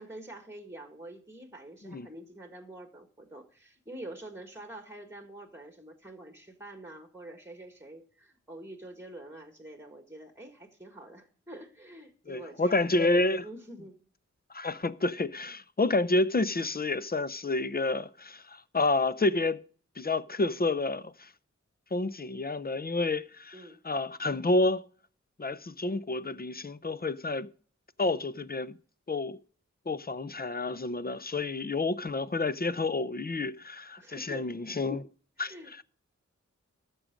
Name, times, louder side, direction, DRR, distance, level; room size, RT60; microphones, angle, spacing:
voice 1, 0.0-12.9 13.4-14.0 23.5-23.8 34.0-34.5 35.4-35.8, right 1 dB, 10° right, 1.6 m, -46 dB
voice 2, 12.3-13.4 14.5-19.6 20.0-21.3 21.9-23.6 23.8-24.9 25.4-27.5 28.0-28.8 29.1-29.4 29.9-35.1 35.4-35.5, left 2 dB, 30° left, 0.6 m, -29 dB
14.0 x 6.3 x 5.1 m
wide cardioid pair, 65°, 29 cm